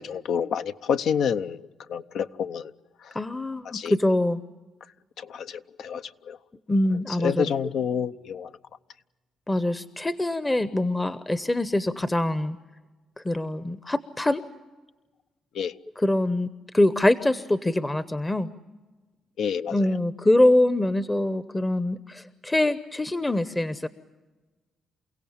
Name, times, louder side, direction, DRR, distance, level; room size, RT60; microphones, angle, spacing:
voice 1, 0.0-1.6 1.9-2.7 3.7-3.9 5.2-6.4 7.2-8.5 15.5-15.7 19.4-19.8, left 7 dB, 75° left, 10 dB, 0.7 m, -28 dB
voice 2, 3.1-4.4 6.7-7.4 9.5-12.6 13.2-14.4 16.0-18.5 19.7-23.9, left 1 dB, 15° left, 13 dB, 0.8 m, -24 dB
29.0 x 16.5 x 8.8 m, 1.2 s
cardioid pair, 90°, 0 cm